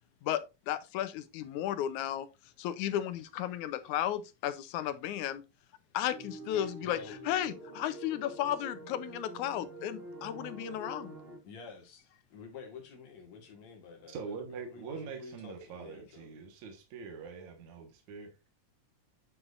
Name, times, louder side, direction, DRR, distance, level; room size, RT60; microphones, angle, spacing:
voice 1, 0.2-2.3 2.6-5.4 5.9-7.0 7.3-11.2, left 11 dB, 85° left, 2.2 m, -34 dB
sound 1, 6.1-11.4, right 2 dB, 35° right, 1.0 m, -46 dB
voice 2, 6.8-7.2 11.4-16.4, left 5 dB, 70° left, 2.9 m, -50 dB
voice 3, 14.1-18.4, right 5 dB, 75° right, 2.8 m, -43 dB
9.8 x 5.9 x 2.5 m
omnidirectional pair, 3.4 m